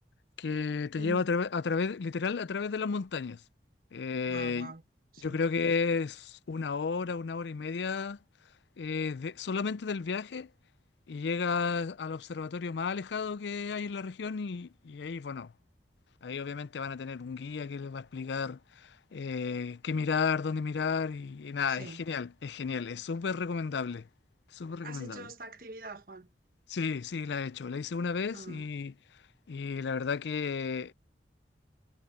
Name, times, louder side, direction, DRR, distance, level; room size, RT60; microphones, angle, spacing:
voice 1, 0.4-3.4 3.9-4.7 5.2-8.2 8.8-10.5 11.1-15.5 16.2-24.1 24.5-25.3 26.7-28.9 29.5-30.9, left 5 dB, 75° left, 0.5 m, -33 dB
voice 2, 4.3-4.8 5.1-5.4 21.7-22.0 24.8-26.3 28.3-28.7, right 2 dB, 50° right, 1.3 m, -44 dB
head